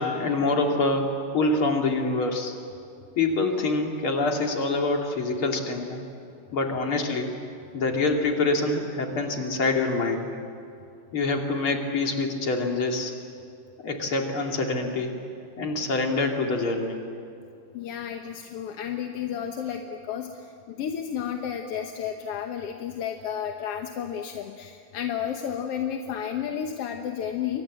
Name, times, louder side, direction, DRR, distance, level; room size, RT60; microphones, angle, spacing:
voice 1, 0.0-2.5 3.2-6.0 6.5-7.3 7.7-10.3 11.1-13.1 13.8-15.1 15.6-17.0, left 3 dB, 45° left, 1 dB, 3.4 m, -25 dB
voice 2, 17.7-20.3 20.7-27.6, left 8 dB, 60° left, 4 dB, 1.8 m, -32 dB
30.0 x 24.5 x 7.6 m, 2.5 s
omnidirectional pair, 3.5 m